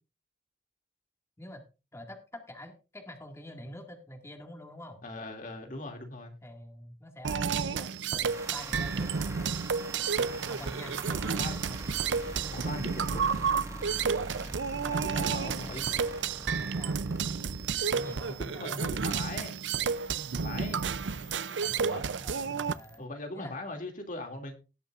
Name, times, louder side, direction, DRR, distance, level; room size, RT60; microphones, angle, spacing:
voice 1, 1.9-5.0 6.4-9.6 10.5-12.1 16.6-17.0 17.9-18.7 21.6-23.1 23.3-23.6, left 1 dB, 15° left, 3 dB, 2.0 m, -47 dB
voice 2, 5.0-6.3 11.2-11.6 12.5-13.7 14.8-15.8 18.4-19.6 20.3-20.8 21.8-22.1 23.0-24.6, left 2 dB, 50° left, 3 dB, 2.6 m, -40 dB
sound 1, 7.2-22.7, right 6 dB, 85° right, 0.6 m, -31 dB
sound 2, 8.3-23.0, right 1 dB, 15° right, 1.6 m, -44 dB
18.5 x 8.3 x 2.5 m, 0.30 s
head